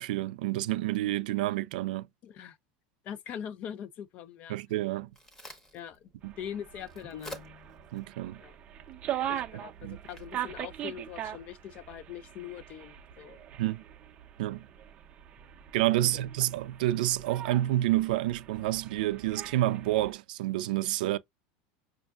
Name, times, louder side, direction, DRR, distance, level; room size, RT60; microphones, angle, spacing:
voice 1, 0.0-2.1 4.5-5.1 6.2-6.3 7.9-8.4 9.5-10.0 13.6-13.8 14.4-14.7 15.7-21.2, right 15 dB, 90° right, 0.4 m, -29 dB
voice 2, 2.2-2.6 3.0-4.6 5.7-6.1 6.4-7.4 8.4-8.6 9.3-13.4 16.0-16.2, left 9 dB, 30° left, 0.3 m, -42 dB
Crack, 4.7-11.6, left 1 dB, 10° left, 0.7 m, -52 dB
sound 1, 6.2-20.1, right 11 dB, 25° right, 0.5 m, -41 dB
sound 2, 7.1-8.2, left 8 dB, 85° left, 0.9 m, -49 dB
5.4 x 2.5 x 2.3 m
supercardioid pair, 175°, 5 cm